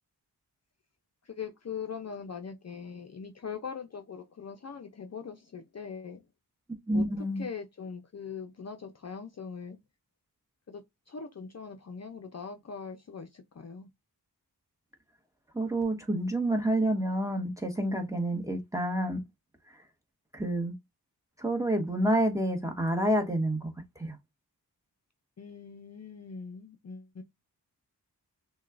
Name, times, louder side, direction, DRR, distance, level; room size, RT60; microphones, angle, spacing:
voice 1, 1.2-6.3 6.9-9.8 10.7-13.9 25.4-27.2, left 6 dB, 40° left, 0.6 m, -41 dB
voice 2, 6.9-7.4 15.5-19.2 19.7-19.8 20.3-20.7 21.4-24.2, right 1 dB, 10° right, 1.2 m, -28 dB
6.2 x 2.3 x 2.5 m
wide cardioid pair, 75°, 40 cm